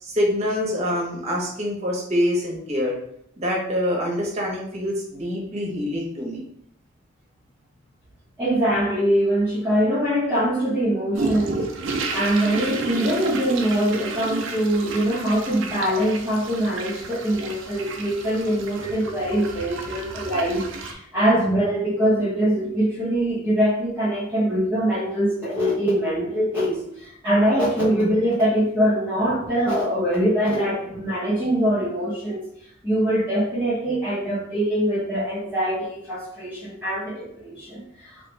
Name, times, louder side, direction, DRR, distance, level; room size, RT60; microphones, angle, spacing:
voice 1, 0.0-3.0 3.4-6.4, equal, 35° right, -3 dB, 1.0 m, -25 dB
voice 2, 8.4-32.5 32.8-38.2, right 1 dB, 10° right, -11 dB, 0.8 m, -23 dB
sound 1, 11.1-20.9, right 3 dB, 70° right, 0.4 m, -32 dB
2.9 x 2.4 x 3.2 m, 0.71 s
head